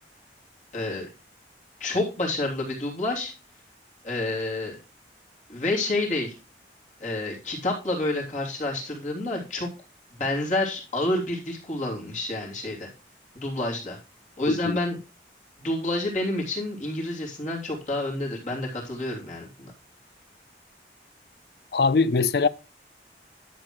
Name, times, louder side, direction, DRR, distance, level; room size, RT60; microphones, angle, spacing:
voice 1, 0.7-1.1 1.8-3.3 4.0-4.8 5.5-6.3 7.0-9.7 10.2-12.9 13.3-14.0 14.4-15.0 15.6-19.7, left 2 dB, 45° left, 3.1 m, -29 dB
voice 2, 14.5-14.8 21.7-22.5, left 4 dB, 60° left, 0.5 m, -22 dB
11.5 x 6.3 x 3.2 m
head